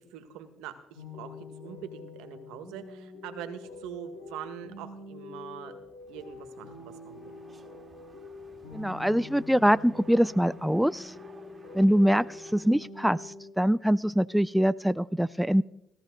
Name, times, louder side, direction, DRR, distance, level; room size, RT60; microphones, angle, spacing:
voice 1, 0.0-5.7 6.1-7.3, right 9 dB, 80° right, 8 dB, 1.7 m, -43 dB
sound 1, 0.9-13.5, left 3 dB, 85° left, 6.3 m, -46 dB
sound 2, 6.0-12.7, right 4 dB, 30° right, 1.9 m, -55 dB
voice 2, 8.7-11.1 11.7-15.6, equal, ahead, 16 dB, 0.4 m, -24 dB
17.5 x 13.5 x 3.9 m, 0.82 s
supercardioid pair, 75°, 0 cm